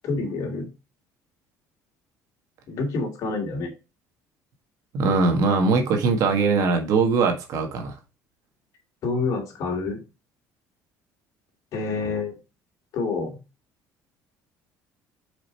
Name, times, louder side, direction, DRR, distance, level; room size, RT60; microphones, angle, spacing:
voice 1, 0.0-0.7 2.7-3.7 9.0-10.0 11.7-12.4 12.9-13.4, left 3 dB, 55° left, 2.4 m, -27 dB
voice 2, 4.9-8.0, right 4 dB, 60° right, 1.5 m, -21 dB
5.0 x 4.8 x 4.4 m
cardioid pair, 135°, 7 cm